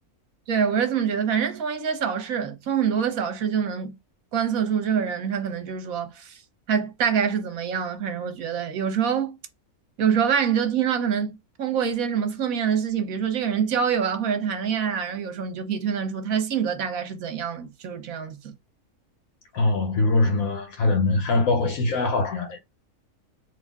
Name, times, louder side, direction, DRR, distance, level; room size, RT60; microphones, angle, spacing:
voice 1, 0.5-3.9 4.3-6.4 6.7-9.3 10.0-18.5, right 7 dB, 70° right, 1.4 m, -25 dB
voice 2, 19.5-22.6, left 2 dB, 70° left, 1.2 m, -22 dB
3.9 x 2.8 x 3.5 m
omnidirectional pair, 1.6 m